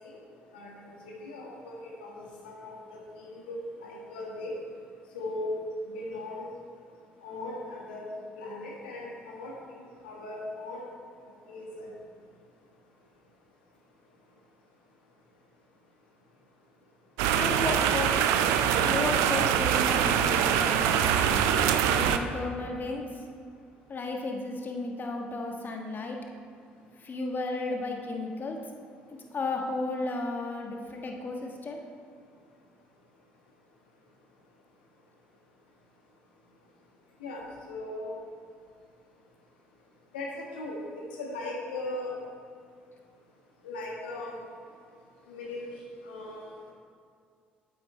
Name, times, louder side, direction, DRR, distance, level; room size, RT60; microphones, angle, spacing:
voice 1, 0.5-4.5 5.1-5.6 5.9-6.5 7.2-8.0 8.4-10.8 11.5-11.9 37.2-37.4 37.7-38.1 40.1-40.7 41.2-42.1 43.6-44.4 45.3-45.7 46.1-46.5, left 2 dB, 80° left, -2 dB, 1.6 m, -38 dB
sound 1, 17.2-22.2, right 9 dB, 70° right, 0.4 m, -24 dB
voice 2, 17.3-21.4 21.8-23.0 23.9-26.2 27.0-28.6 29.1-31.8, left 3 dB, 40° left, 2 dB, 1.4 m, -34 dB
8.3 x 7.9 x 4.4 m, 2.3 s
hypercardioid pair, 50°, 5 cm